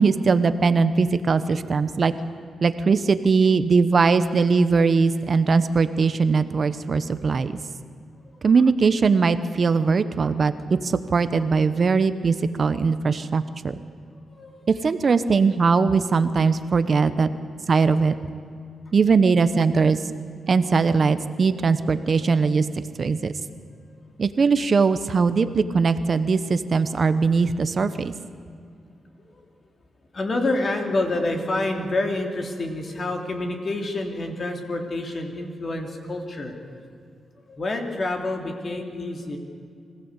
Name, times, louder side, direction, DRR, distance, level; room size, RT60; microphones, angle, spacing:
voice 1, 0.0-2.1 2.6-7.6 8.4-10.5 10.8-13.8 14.8-17.3 17.7-18.2 18.9-20.0 20.5-22.7 23.0-23.3 24.2-28.1, right 4 dB, 50° right, 11 dB, 1.0 m, -20 dB
voice 2, 14.3-14.7 15.3-15.4 16.1-16.3 21.5-22.4 23.4-24.1 29.2-29.4 30.1-36.9 37.4-39.4, left 2 dB, 45° left, 2 dB, 3.2 m, -29 dB
24.5 x 16.0 x 8.3 m, 2.3 s
cardioid pair, 90°, 0 cm